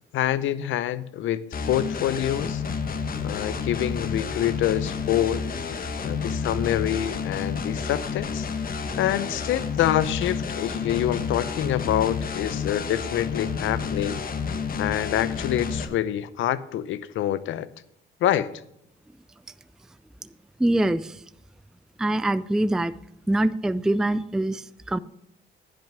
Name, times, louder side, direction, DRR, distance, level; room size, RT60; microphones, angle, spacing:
voice 1, 0.1-2.6 3.2-5.4 6.0-8.5 9.0-14.2 14.8-17.7 18.2-18.5, left 11 dB, 80° left, 16 dB, 0.7 m, -26 dB
sound 1, 1.5-15.9, left 5 dB, 45° left, 1.1 m, -30 dB
voice 2, 20.6-21.2 22.0-22.9 23.3-25.0, right 1 dB, 5° right, 16 dB, 0.3 m, -24 dB
10.5 x 6.1 x 7.5 m, 0.76 s
cardioid pair, 90°, 20 cm